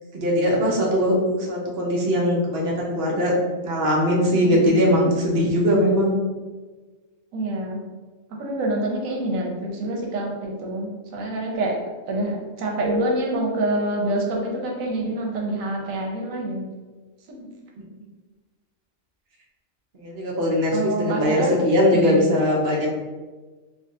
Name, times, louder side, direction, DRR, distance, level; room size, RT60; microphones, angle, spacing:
voice 1, 0.1-1.2 1.5-3.3 3.6-6.1 19.9-22.9, equal, 50° right, -3 dB, 0.9 m, -20 dB
voice 2, 4.5-5.0 5.7-6.2 7.3-7.8 8.4-11.8 12.1-16.7 17.3-17.5 20.7-21.5 21.9-22.3, right 1 dB, 90° right, 0 dB, 1.1 m, -27 dB
Keyboard (musical), 12.8-14.8, equal, 75° left, 1.0 m, -31 dB
4.8 x 2.3 x 2.6 m, 1.3 s
omnidirectional pair, 1.3 m